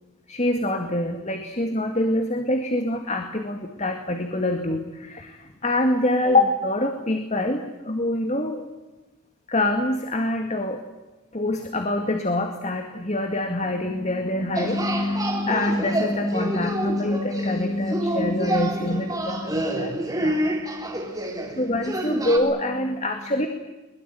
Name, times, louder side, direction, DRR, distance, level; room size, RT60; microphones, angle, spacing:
voice 1, 0.3-8.7 9.5-10.8 11.3-20.6 21.5-23.5, left 1 dB, 30° left, 5 dB, 2.1 m, -25 dB
sound 1, 14.6-22.4, right 1 dB, 15° right, 3.4 m, -28 dB
23.0 x 22.0 x 9.3 m, 1.1 s
head